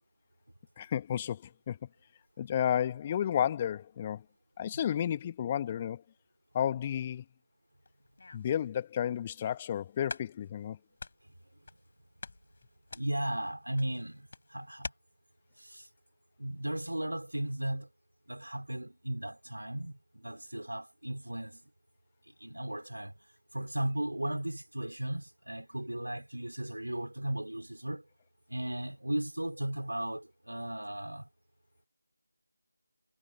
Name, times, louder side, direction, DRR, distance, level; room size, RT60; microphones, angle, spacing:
voice 1, 0.8-1.8 2.4-4.2 4.6-6.0 6.5-7.2 8.3-10.8, left 10 dB, 15° left, 1.8 m, -32 dB
sound 1, 7.8-8.6 9.2-9.3 9.7-9.8 10.1-10.7 11.0-11.9 12.2-14.9, left 3 dB, 35° left, 5.8 m, -45 dB
voice 2, 12.9-14.9 15.6-15.9 16.4-17.9 18.3-21.6 22.4-23.1 23.5-28.0 28.5-31.3, right 1 dB, 75° right, 3.1 m, -36 dB
figure-of-eight pair, 165°, 0 cm